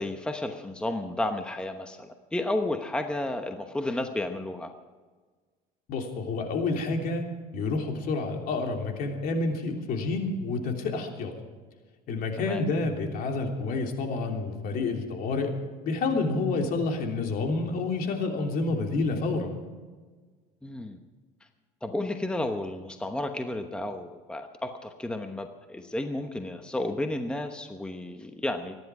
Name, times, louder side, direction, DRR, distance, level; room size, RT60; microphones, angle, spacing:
voice 1, 0.0-4.7 12.4-12.6 20.6-21.0 21.8-28.8, left 1 dB, 5° left, 6 dB, 1.0 m, -32 dB
voice 2, 5.9-7.3 7.5-11.3 12.1-15.5 15.8-19.6, left 3 dB, 55° left, 2 dB, 3.2 m, -29 dB
24.0 x 11.0 x 4.8 m, 1.4 s
cardioid pair, 120°, 17 cm